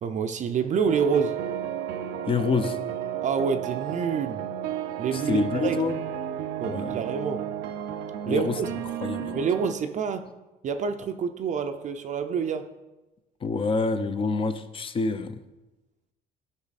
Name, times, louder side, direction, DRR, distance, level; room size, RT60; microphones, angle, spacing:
voice 1, 0.0-1.4 3.2-4.5 5.0-5.8 6.6-7.4 8.3-8.7 9.3-10.3 10.6-12.7, right 6 dB, 45° right, 7 dB, 0.5 m, -27 dB
sound 1, 0.9-9.7, right 10 dB, 85° right, 0.6 m, -33 dB
voice 2, 2.3-2.8 5.1-6.0 6.6-7.0 8.3-8.6 9.0-9.4 13.4-15.4, left 4 dB, 30° left, 10 dB, 0.7 m, -27 dB
12.0 x 5.6 x 4.1 m, 1.1 s
cardioid pair, 110°, 17 cm